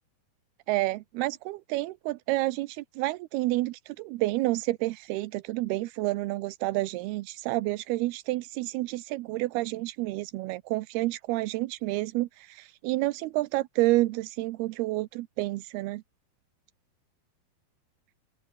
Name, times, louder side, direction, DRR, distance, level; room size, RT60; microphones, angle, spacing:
voice 1, 0.7-16.0, right 19 dB, 85° right, 2.7 m, -29 dB
open air
omnidirectional pair, 4.4 m